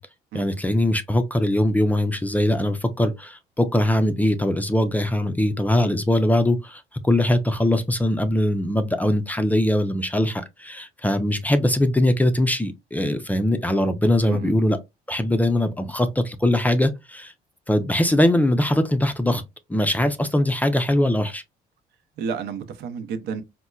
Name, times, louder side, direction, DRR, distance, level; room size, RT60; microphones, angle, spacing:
voice 1, 0.3-14.8 15.1-17.3 17.7-19.4 19.7-21.4, left 1 dB, 10° left, 0.4 m, -21 dB
voice 2, 14.2-14.5 22.2-23.4, right 6 dB, 75° right, 0.7 m, -31 dB
4.2 x 2.1 x 2.3 m
cardioid pair, 110°, 17 cm